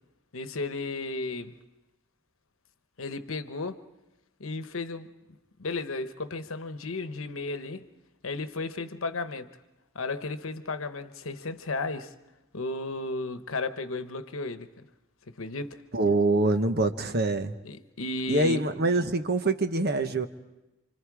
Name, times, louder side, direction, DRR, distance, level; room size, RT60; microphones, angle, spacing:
voice 1, 0.3-1.5 3.0-3.8 4.4-5.1 5.6-7.9 8.2-9.5 9.9-12.1 12.5-14.8 15.4-15.8 17.6-18.6, left 3 dB, 80° left, 1.1 m, -34 dB
voice 2, 15.9-17.6 18.3-20.3, right 2 dB, 50° right, 1.1 m, -25 dB
28.5 x 26.0 x 4.9 m
head